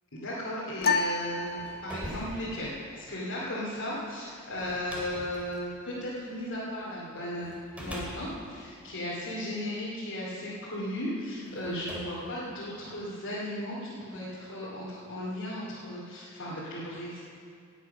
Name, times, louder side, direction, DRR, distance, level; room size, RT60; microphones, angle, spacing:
voice 1, 0.1-7.5 7.8-17.2, left 1 dB, 60° left, -9 dB, 2.6 m, -36 dB
sound 1, 0.8-2.3, left 4 dB, 45° left, 0.6 m, -30 dB
sound 2, 1.2-6.8 7.4-9.9 10.7-10.8 11.5-13.1, equal, 5° right, 2.5 m, -44 dB
18.0 x 8.2 x 5.7 m, 2.3 s
head